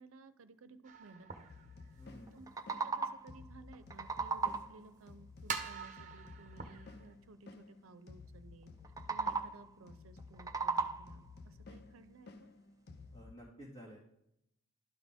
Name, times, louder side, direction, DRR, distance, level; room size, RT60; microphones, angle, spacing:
voice 1, 0.0-1.5 2.3-8.7 9.1-12.5, right 3 dB, 80° right, 12 dB, 0.6 m, -57 dB
sound 1, 0.8-2.5 2.9-3.0 3.5-3.6 4.6-4.7 5.4-7.1, right 5 dB, 35° right, 0.8 m, -44 dB
sound 2, 1.5-13.4, left 3 dB, 50° left, 0.5 m, -54 dB
voice 2, 2.0-2.3 13.1-14.2, equal, 30° left, -7 dB, 2.0 m, -53 dB
sound 3, 2.3-3.4 3.7-4.9 8.8-9.7 10.2-11.3, right 4 dB, 15° right, 0.3 m, -37 dB
12.0 x 4.1 x 3.6 m, 0.79 s
head